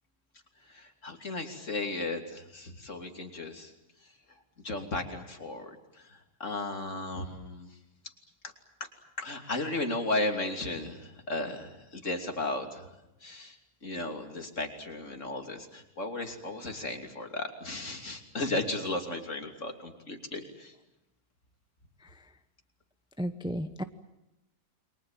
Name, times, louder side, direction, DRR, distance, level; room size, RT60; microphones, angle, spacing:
voice 1, 0.6-3.7 4.6-7.7 8.4-8.5 9.2-12.9 13.2-20.7, left 2 dB, 45° left, 4 dB, 3.3 m, -35 dB
voice 2, 23.2-23.8, equal, 5° right, 9 dB, 0.8 m, -33 dB
29.5 x 23.5 x 7.5 m, 0.90 s
omnidirectional pair, 1.8 m